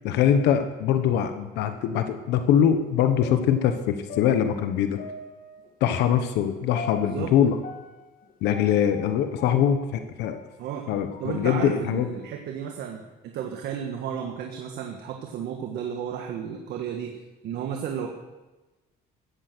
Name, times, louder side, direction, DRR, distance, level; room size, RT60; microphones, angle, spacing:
voice 1, 0.0-5.0 5.8-7.6 8.4-10.4 10.9-12.1, left 9 dB, 85° left, 8 dB, 1.2 m, -23 dB
sound 1, 3.2-10.4 10.9-12.2 12.6-12.7, left 4 dB, 55° left, 1.8 m, -42 dB
voice 2, 7.0-7.3 10.6-10.9 11.2-18.1, right 8 dB, 75° right, 3 dB, 1.6 m, -33 dB
15.5 x 12.5 x 6.2 m, 1.1 s
cardioid pair, 110°, 17 cm